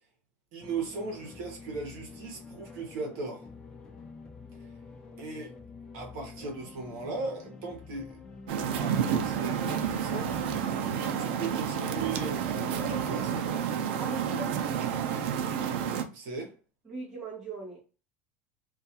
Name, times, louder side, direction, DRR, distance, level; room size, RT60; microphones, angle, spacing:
voice 1, 0.5-3.5 4.5-4.7 5.2-5.5 5.9-8.2 8.7-13.6 16.1-16.5, right 3 dB, 50° right, 0.9 m, -38 dB
sound 1, 0.6-13.5, left 4 dB, 15° left, 0.3 m, -47 dB
sound 2, 8.5-16.0, right 8 dB, 80° right, 0.4 m, -30 dB
voice 2, 12.8-13.2 14.0-14.9 16.4-16.5 16.9-17.8, right 2 dB, 10° right, 0.7 m, -41 dB
2.3 x 2.3 x 2.7 m
cardioid pair, 180°, 6 cm